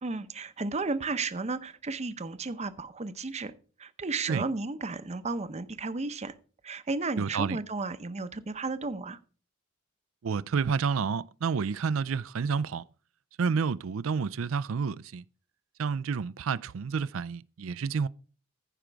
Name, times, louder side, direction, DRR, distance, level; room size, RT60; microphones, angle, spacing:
voice 1, 0.0-3.5 3.8-6.3 6.6-9.2, right 3 dB, 35° right, 0.7 m, -33 dB
voice 2, 7.2-7.6 10.2-12.8 13.4-15.2 15.8-18.1, right 5 dB, 75° right, 0.4 m, -29 dB
15.0 x 5.1 x 4.5 m
head